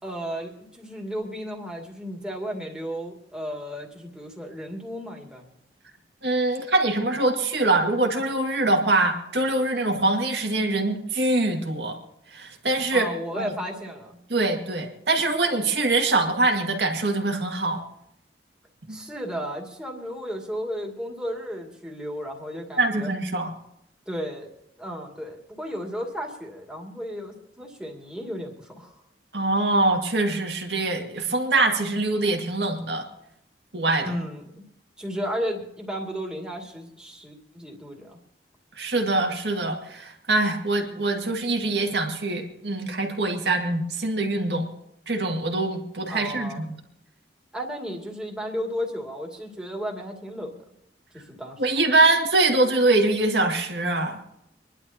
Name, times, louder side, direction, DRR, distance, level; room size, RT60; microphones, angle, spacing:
voice 1, 0.0-5.5 12.9-14.2 18.9-23.1 24.1-24.5 24.8-29.0 34.0-34.6 35.0-38.2 46.1-46.6 47.5-50.6 51.1-51.6, equal, 5° right, -1 dB, 2.4 m, -34 dB
voice 2, 6.2-12.0 12.3-13.1 13.4-13.5 14.3-17.8 18.9-19.0 22.8-23.5 29.3-33.1 33.7-34.1 38.8-44.7 45.1-46.8 51.6-54.2, right 2 dB, 65° right, 3 dB, 2.1 m, -23 dB
26.5 x 11.5 x 2.9 m, 0.80 s
head